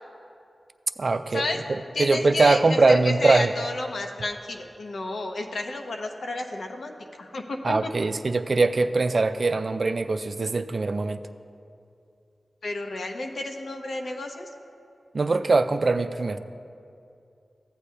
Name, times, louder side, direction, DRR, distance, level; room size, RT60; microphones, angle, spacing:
voice 1, 1.0-3.5 7.6-11.3 15.1-16.4, right 3 dB, 60° right, 9 dB, 0.4 m, -22 dB
voice 2, 1.9-7.9 12.6-14.5, left 2 dB, 85° left, 3 dB, 0.7 m, -31 dB
15.5 x 8.2 x 2.2 m, 2.5 s
cardioid pair, 55°, 0 cm